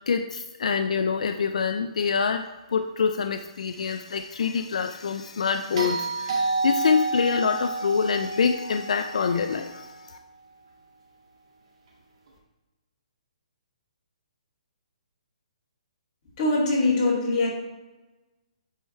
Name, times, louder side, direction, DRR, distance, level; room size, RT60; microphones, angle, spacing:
voice 1, 0.1-10.2, left 6 dB, 70° left, 7 dB, 0.4 m, -26 dB
sound 1, 5.8-10.0 12.3-12.4, right 3 dB, 55° right, 1.9 m, -30 dB
voice 2, 16.4-17.5, left 2 dB, 25° left, -6 dB, 2.4 m, -22 dB
8.9 x 4.6 x 3.2 m, 1.1 s
hypercardioid pair, 160°, 4 cm